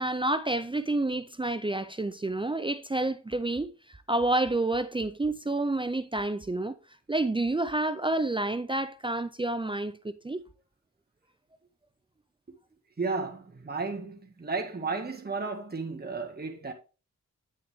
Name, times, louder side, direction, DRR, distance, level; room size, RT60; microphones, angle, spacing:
voice 1, 0.0-6.8 7.1-10.4, right 2 dB, 15° right, 0.5 m, -29 dB
voice 2, 13.0-16.7, right 4 dB, 30° right, 1.9 m, -33 dB
9.6 x 6.4 x 3.6 m
cardioid pair, 70°, 30 cm